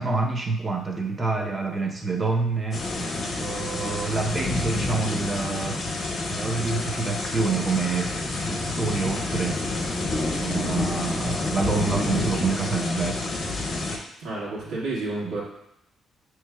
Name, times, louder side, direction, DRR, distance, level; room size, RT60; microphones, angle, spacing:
voice 1, 0.0-2.9 3.4-5.8 6.3-8.1 8.5-9.7 10.3-13.2 15.2-15.4, right 3 dB, 30° right, 2 dB, 0.6 m, -27 dB
sound 1, 2.7-14.0, left 2 dB, 55° left, 1.0 m, -29 dB
voice 2, 14.2-15.4, right 2 dB, 85° right, -6 dB, 1.4 m, -30 dB
5.5 x 3.0 x 2.3 m, 0.79 s
cardioid pair, 90°, 0 cm